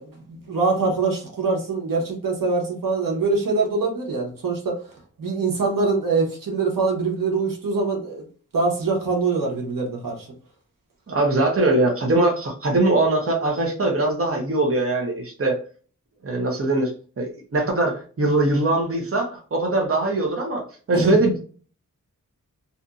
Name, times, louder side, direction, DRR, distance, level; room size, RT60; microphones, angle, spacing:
voice 1, 0.0-4.8 5.2-8.3 8.5-10.3 20.9-21.2, right 3 dB, 85° right, -1 dB, 1.0 m, -24 dB
voice 2, 11.1-15.6 16.2-16.9 17.2-21.4, right 2 dB, 45° right, 1 dB, 0.8 m, -21 dB
2.6 x 2.6 x 2.3 m, 0.41 s
wide cardioid pair, 105°, 32 cm